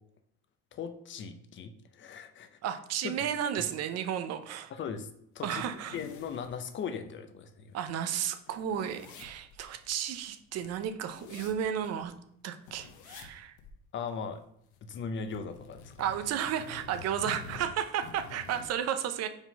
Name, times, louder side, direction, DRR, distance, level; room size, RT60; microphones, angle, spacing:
voice 1, 0.7-2.6 3.0-3.1 4.7-5.1 5.3-5.6 5.9-7.8 13.9-14.4 14.8-16.0, left 6 dB, 40° left, 9 dB, 0.6 m, -38 dB
voice 2, 2.6-4.7 5.4-6.0 7.7-12.1 12.4-13.6 16.0-19.3, right 9 dB, 55° right, 9 dB, 0.7 m, -33 dB
sound 1, 4.5-4.6 4.9-5.0 5.4-7.0 7.4-7.5 7.7-12.1 12.6-13.3 13.6-13.7 14.1-15.0 15.3-18.7, left 5 dB, 70° left, 1.0 m, -49 dB
5.0 x 3.7 x 5.4 m, 0.71 s
cardioid pair, 120°, 31 cm